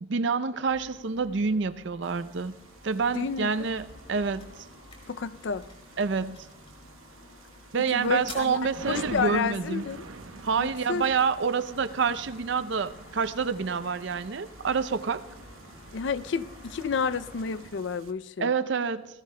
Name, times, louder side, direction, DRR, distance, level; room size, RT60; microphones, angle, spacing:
voice 1, 0.0-2.5 2.8-4.7 6.0-6.4 7.7-9.9 10.4-15.2 18.4-19.1, right 5 dB, 60° right, 0.5 m, -27 dB
sound 1, 0.6-17.6, left 1 dB, 85° left, 6.1 m, -50 dB
sound 2, 2.0-18.1, right 3 dB, 85° right, 0.9 m, -47 dB
sound 3, 2.5-14.5, left 3 dB, 30° left, 3.6 m, -54 dB
voice 2, 3.1-3.7 5.1-5.6 7.9-8.6 8.9-10.1 10.6-11.1 15.9-18.5, left 5 dB, 60° left, 0.4 m, -30 dB
26.5 x 17.0 x 2.2 m
head